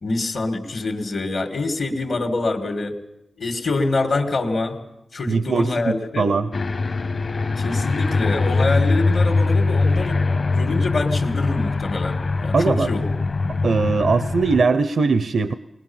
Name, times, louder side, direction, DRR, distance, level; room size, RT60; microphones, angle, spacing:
voice 1, 0.0-3.0 3.4-4.8 5.1-6.3 7.6-13.1, left 3 dB, 70° left, 4 dB, 2.2 m, -25 dB
voice 2, 5.3-6.5 12.5-12.9 13.6-15.5, right 4 dB, 70° right, 12 dB, 0.7 m, -20 dB
Aircraft, 6.5-14.6, left 3 dB, 50° left, 1.2 m, -22 dB
21.0 x 20.0 x 7.2 m, 0.88 s
wide cardioid pair, 80°, 0 cm